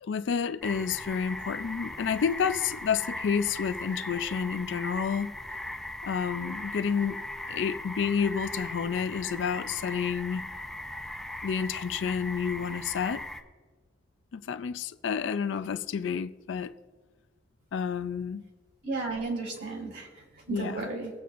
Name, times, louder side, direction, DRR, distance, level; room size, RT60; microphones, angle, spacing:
voice 1, 0.0-5.3 6.0-7.2 7.5-10.5 11.4-13.3 14.3-16.7 17.7-18.4 20.5-20.9, left 6 dB, 75° left, 0.4 m, -30 dB
sound 1, 0.6-13.4, left 1 dB, ahead, 0.6 m, -39 dB
voice 2, 18.8-21.1, right 3 dB, 70° right, 3.3 m, -34 dB
24.0 x 8.4 x 2.5 m
head